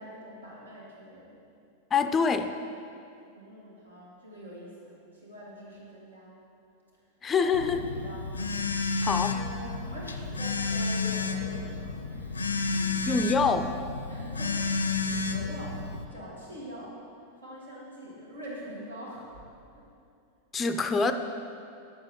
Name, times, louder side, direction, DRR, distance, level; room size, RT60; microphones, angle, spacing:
voice 1, 0.0-1.4 3.3-6.5 7.3-8.3 9.3-13.4 14.1-15.8 16.1-17.0 17.4-19.4 19.8-19.9, equal, 75° right, -5 dB, 2.0 m, -44 dB
voice 2, 1.9-2.5 7.2-7.9 9.0-9.4 13.1-13.8 20.5-21.1, left 5 dB, 20° left, 8 dB, 0.4 m, -25 dB
Telephone, 7.5-16.1, left 4 dB, 75° left, 0.4 m, -31 dB
8.5 x 7.2 x 3.7 m, 2.5 s
figure-of-eight pair, 90°, 0 cm